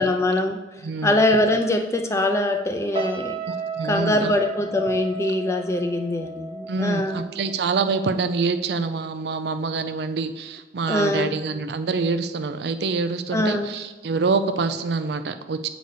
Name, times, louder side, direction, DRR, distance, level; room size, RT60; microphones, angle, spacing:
voice 1, 0.0-3.4 3.8-7.2 10.9-11.4 13.3-13.7, left 1 dB, 15° left, 5 dB, 0.5 m, -23 dB
voice 2, 0.8-1.2 3.8-4.3 6.7-15.7, right 4 dB, 65° right, 9 dB, 0.4 m, -26 dB
sound 1, 2.9-8.2 8.6-8.9, right 4 dB, 30° right, 0.7 m, -33 dB
7.9 x 4.0 x 4.9 m, 1.2 s
head